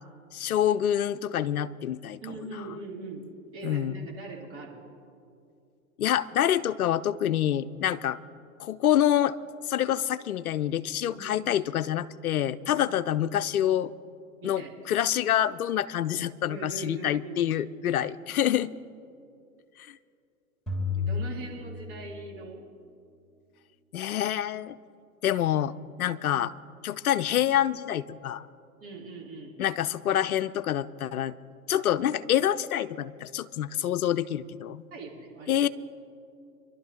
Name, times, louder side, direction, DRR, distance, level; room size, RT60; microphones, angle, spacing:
voice 1, 0.3-2.2 3.6-4.0 6.0-8.2 8.6-9.4 9.7-13.9 14.4-18.7 19.9-20.0 23.9-24.8 25.2-25.7 26.0-26.5 26.8-28.5 29.6-31.3 31.7-34.8 35.5-35.7, left 11 dB, 75° left, 14 dB, 0.6 m, -27 dB
voice 2, 2.2-3.3 3.5-4.9 11.1-11.5 12.7-12.9 14.4-14.8 16.5-17.6 21.0-22.6 28.8-29.6 34.9-35.7, right 3 dB, 30° right, -3 dB, 3.5 m, -41 dB
sound 1, 20.7-22.5, left 5 dB, ahead, 3.4 m, -32 dB
27.0 x 12.0 x 2.9 m, 2.5 s
hypercardioid pair, 110°, 44 cm